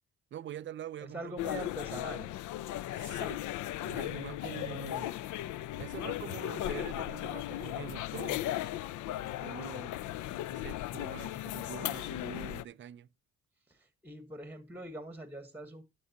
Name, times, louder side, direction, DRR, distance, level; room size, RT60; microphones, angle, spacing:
voice 1, 0.3-1.6 2.9-3.4 3.8-5.2 5.8-8.6 9.2-10.0 10.5-13.1, right 11 dB, 40° right, 0.4 m, -45 dB
voice 2, 1.0-2.3 13.7-15.8, right 2 dB, 5° right, 1.3 m, -43 dB
sound 1, 1.4-12.6, left 14 dB, 75° left, 0.5 m, -37 dB
10.5 x 6.7 x 2.8 m
cardioid pair, 90°, 30 cm